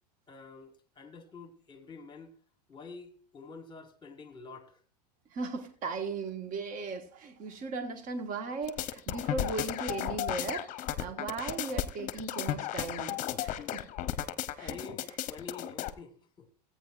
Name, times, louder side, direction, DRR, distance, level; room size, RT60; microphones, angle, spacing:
voice 1, 0.3-2.3 2.7-4.8 14.1-14.3 14.6-16.5, left 4 dB, 20° left, 1.4 m, -48 dB
voice 2, 5.3-10.7 11.0-13.8 14.6-14.8, right 4 dB, 40° right, 1.4 m, -37 dB
sound 1, 8.7-15.9, left 12 dB, 40° left, 0.8 m, -34 dB
16.5 x 8.8 x 2.5 m
hypercardioid pair, 105°, 21 cm